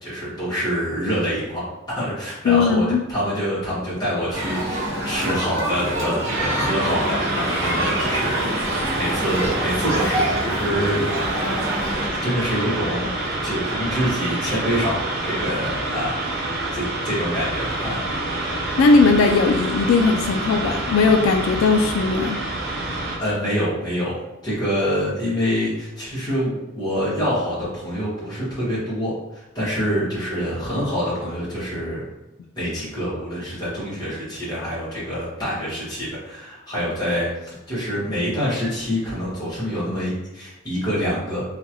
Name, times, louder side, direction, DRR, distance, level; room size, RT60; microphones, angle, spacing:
voice 1, 0.0-11.1 11.6-16.2 16.7-18.0 23.2-32.0 32.5-41.4, equal, 20° left, -10 dB, 1.4 m, -26 dB
voice 2, 2.5-3.0 18.8-22.4, left 4 dB, 85° left, 4 dB, 0.3 m, -18 dB
sound 1, 4.3-12.1, right 1 dB, 80° right, 0.9 m, -26 dB
sound 2, 6.3-23.2, right 2 dB, 55° right, 0.6 m, -27 dB
3.0 x 2.4 x 2.9 m, 0.99 s
head